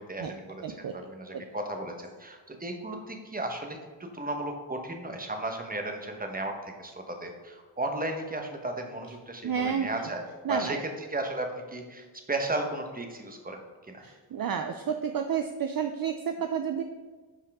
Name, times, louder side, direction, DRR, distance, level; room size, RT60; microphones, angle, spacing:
voice 1, 0.0-10.2 10.5-13.6 13.9-14.0, right 2 dB, 20° right, 3 dB, 1.1 m, -35 dB
voice 2, 0.6-1.0 1.3-1.4 9.4-9.9 10.4-10.8 14.0-16.8, right 7 dB, 50° right, 6 dB, 0.5 m, -31 dB
10.0 x 5.5 x 3.6 m, 1.3 s
wide cardioid pair, 120°, 47 cm